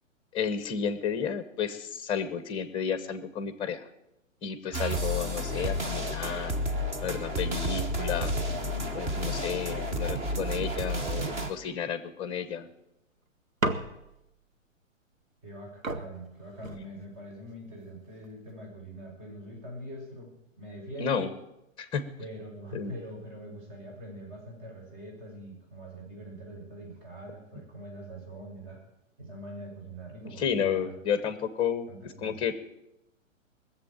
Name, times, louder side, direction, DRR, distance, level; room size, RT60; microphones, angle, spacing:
voice 1, 0.3-3.8 4.4-6.5 7.0-8.4 8.9-12.7 21.0-21.3 21.8-22.0 22.7-22.9 30.4-31.9 32.2-32.5, left 7 dB, 15° left, 12 dB, 0.9 m, -32 dB
sound 1, 4.7-11.5, equal, 15° right, 1.0 m, -31 dB
sound 2, 13.6-14.3 15.5-15.6 15.8-17.3 18.1-18.5, right 1 dB, 85° right, 1.3 m, -34 dB
voice 2, 15.4-21.3 22.2-28.8 29.2-31.0 31.9-32.4, right 1 dB, 40° right, 0 dB, 6.3 m, -43 dB
19.0 x 7.5 x 8.7 m, 0.88 s
figure-of-eight pair, 115°, 39 cm